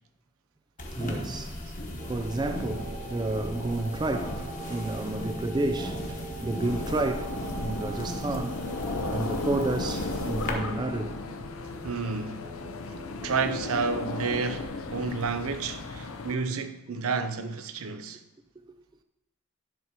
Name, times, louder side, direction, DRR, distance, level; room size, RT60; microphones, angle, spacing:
sound 1, 0.8-10.5, left 1 dB, 35° left, 1.1 m, -37 dB
voice 1, 0.9-1.6 2.1-8.6 9.0-11.1 16.9-17.0, right 2 dB, 20° right, 0.3 m, -31 dB
sound 2, 2.0-14.0, right 2 dB, 45° right, 1.8 m, -42 dB
sound 3, 6.6-16.3, left 3 dB, 75° left, 0.7 m, -36 dB
voice 2, 11.8-12.5 13.2-18.2, right 4 dB, 80° right, 0.7 m, -31 dB
10.0 x 4.3 x 5.9 m
head